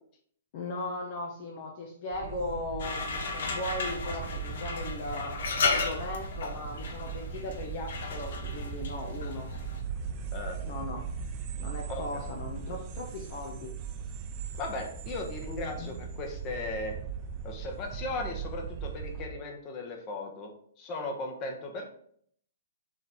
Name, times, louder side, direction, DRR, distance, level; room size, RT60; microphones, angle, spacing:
voice 1, 0.5-5.4 5.6-9.5 10.6-11.0 11.6-13.7 15.6-15.9, left 2 dB, 50° left, 1 dB, 1.0 m, -38 dB
sound 1, 2.1-19.3, right 6 dB, 35° right, 0.9 m, -39 dB
sound 2, 2.8-9.8, left 4 dB, 65° left, 1.3 m, -34 dB
voice 2, 11.9-12.2 14.6-16.9 17.4-20.5 20.8-21.8, left 2 dB, 30° left, 2 dB, 1.3 m, -37 dB
6.9 x 3.5 x 4.2 m, 0.63 s
hypercardioid pair, 135°, 0 cm